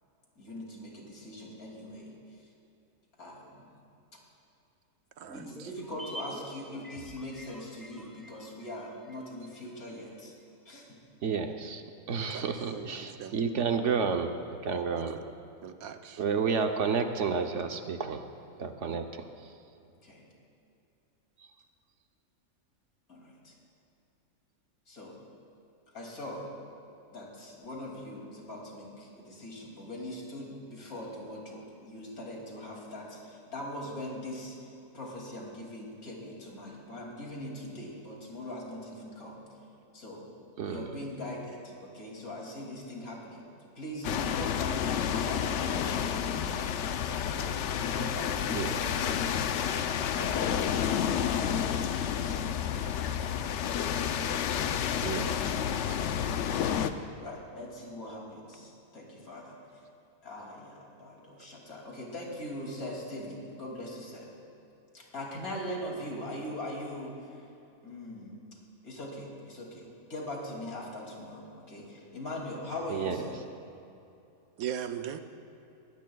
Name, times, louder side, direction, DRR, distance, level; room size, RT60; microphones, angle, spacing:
voice 1, 0.4-2.5 3.2-3.7 5.3-10.3 10.6-11.0 12.2-12.4 16.2-16.3 18.9-19.0 19.9-20.2 23.1-23.6 24.9-25.2 25.9-26.5 27.1-34.6 34.9-39.4 39.9-40.3 40.6-43.5 43.7-46.7 47.0-47.5 47.7-53.2 53.6-54.1 56.3-59.6 60.2-64.3 64.9-67.4 67.8-68.4 68.8-73.4, left 1 dB, 90° left, -2 dB, 3.1 m, -41 dB
sound 1, 5.2-9.7 10.0-10.1, equal, ahead, 0.8 m, -47 dB
voice 2, 5.2-5.7 12.2-12.9 13.2-13.4 15.1-15.3 15.6-16.2 55.4-56.0 74.6-75.2, right 9 dB, 80° right, 8 dB, 1.2 m, -40 dB
voice 3, 11.2-14.3 14.6-15.2 16.2-18.2 18.6-19.5 21.4-21.5 40.6-40.9 48.5-48.8 55.0-55.6 72.9-73.2, right 5 dB, 60° right, 6 dB, 1.0 m, -31 dB
sound 2, 44.0-56.9, left 8 dB, 65° left, 0.8 m, -30 dB
21.0 x 16.5 x 2.3 m, 2.8 s
omnidirectional pair, 1.5 m